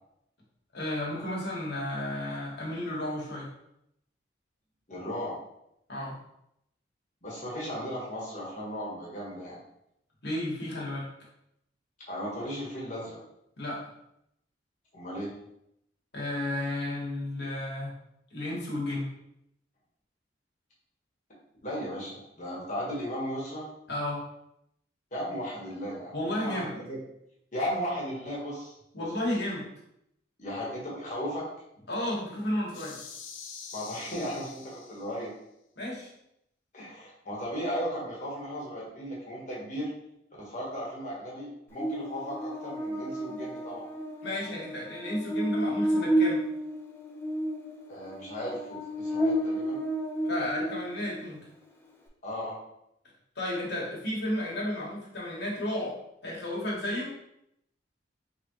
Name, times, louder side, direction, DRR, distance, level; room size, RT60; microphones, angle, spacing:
voice 1, 0.7-3.5 5.9-6.2 10.2-11.1 13.6-13.8 16.1-17.9 18.3-19.1 23.9-24.2 26.1-26.7 28.9-29.7 31.9-33.0 35.8-36.1 44.2-46.4 50.3-51.5 53.4-56.0 56.2-57.1, left 1 dB, 60° left, -4 dB, 1.3 m, -32 dB
voice 2, 4.9-5.4 7.2-9.6 12.1-13.2 14.9-15.3 21.6-23.6 25.1-27.0 27.5-29.1 30.4-31.5 33.7-35.3 36.7-39.9 40.4-43.8 47.9-49.8 52.2-52.6, equal, 40° left, -5 dB, 1.3 m, -36 dB
sound 1, 32.7-35.2, left 6 dB, 85° left, 0.5 m, -45 dB
Buzz, 41.8-51.2, right 1 dB, 10° left, 0.4 m, -31 dB
3.5 x 3.5 x 3.0 m, 0.78 s
head